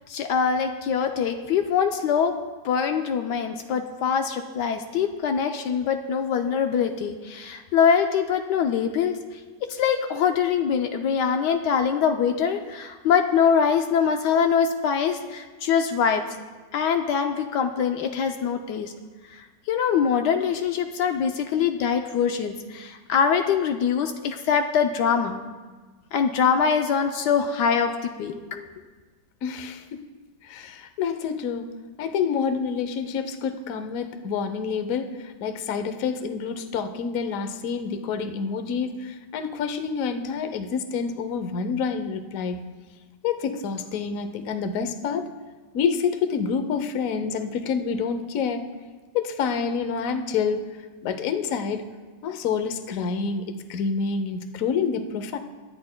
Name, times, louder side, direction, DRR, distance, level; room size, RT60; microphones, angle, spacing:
voice 1, 0.1-2.3 2.6-9.2 9.7-16.2 16.7-18.9 19.3-25.4 26.1-28.6, left 7 dB, 75° left, 5 dB, 1.2 m, -23 dB
voice 2, 29.4-29.8 30.4-31.7 32.0-42.6 43.2-45.3 45.7-48.6 49.1-50.6 51.0-51.8 52.2-55.4, left 6 dB, 60° left, 8 dB, 1.0 m, -28 dB
23.5 x 10.5 x 2.2 m, 1.4 s
omnidirectional pair, 1.9 m